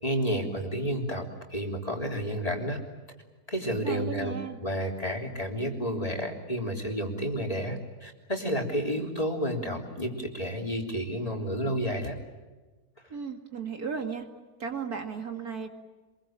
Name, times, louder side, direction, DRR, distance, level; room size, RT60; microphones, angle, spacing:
voice 1, 0.0-2.8 3.5-12.2, equal, 20° left, 1 dB, 3.5 m, -31 dB
voice 2, 3.8-4.6 13.1-14.3 14.6-15.7, right 6 dB, 65° right, 4 dB, 2.8 m, -35 dB
27.0 x 22.0 x 8.9 m, 1.3 s
omnidirectional pair, 1.7 m